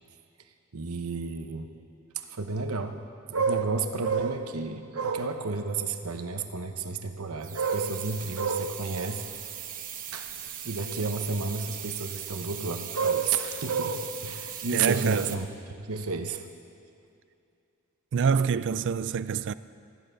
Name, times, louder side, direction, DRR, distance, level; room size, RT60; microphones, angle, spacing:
voice 1, 0.7-1.7 2.1-3.0 3.3-9.2 10.1-10.3 10.6-15.5 15.9-16.5, right 4 dB, 75° right, 1.0 m, -30 dB
sound 1, 7.4-15.3, right 9 dB, 40° right, 1.0 m, -39 dB
voice 2, 14.7-15.4 18.1-19.5, right 6 dB, 55° right, 0.4 m, -26 dB
14.5 x 11.5 x 6.5 m
head